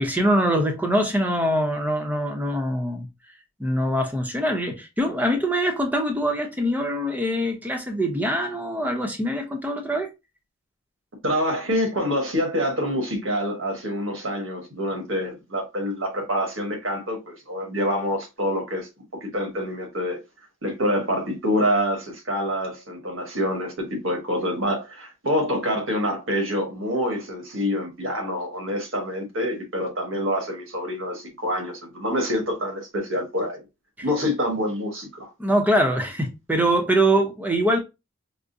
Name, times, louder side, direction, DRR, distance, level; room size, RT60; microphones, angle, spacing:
voice 1, 0.0-3.1 3.6-10.1 35.4-37.8, right 1 dB, 10° right, 0.7 m, -23 dB
voice 2, 11.2-18.9 19.2-20.2 20.6-33.6 34.0-35.3, equal, 85° right, 1.4 m, -26 dB
4.7 x 2.1 x 2.6 m
head